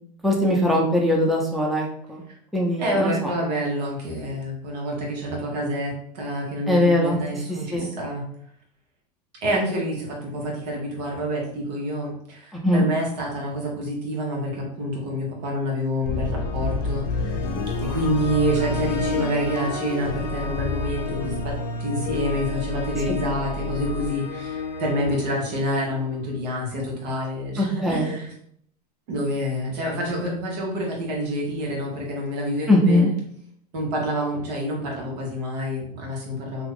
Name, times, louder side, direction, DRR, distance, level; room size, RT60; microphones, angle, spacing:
voice 1, 0.2-2.2 2.5-3.3 6.7-7.2 7.7-7.9 12.5-12.8 27.6-28.1 32.7-33.1, left 1 dB, ahead, -2 dB, 0.6 m, -21 dB
voice 2, 2.8-8.2 9.4-17.3 17.8-21.5 21.8-28.3 29.1-33.1 33.7-36.7, equal, 70° right, -2 dB, 1.4 m, -27 dB
sound 1, 16.1-26.2, left 3 dB, 50° left, 0.7 m, -29 dB
2.9 x 2.4 x 3.6 m, 0.66 s
hypercardioid pair, 110°, 21 cm